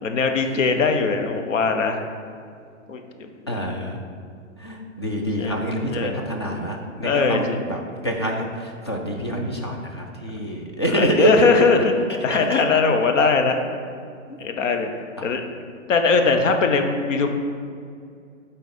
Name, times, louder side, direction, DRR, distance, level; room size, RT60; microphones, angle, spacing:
voice 1, 0.0-2.0 2.9-3.6 5.4-5.6 5.9-6.1 7.0-7.6 10.9-11.9 12.2-13.6 14.4-14.9 15.2-15.4 15.9-17.3, left 4 dB, 65° left, 5 dB, 1.0 m, -20 dB
voice 2, 3.5-4.0 4.6-11.6 12.1-12.8 14.3-14.4 15.2-15.3, right 1 dB, 25° left, 1 dB, 0.3 m, -26 dB
8.1 x 4.1 x 4.2 m, 2.3 s
hypercardioid pair, 145°, 40 cm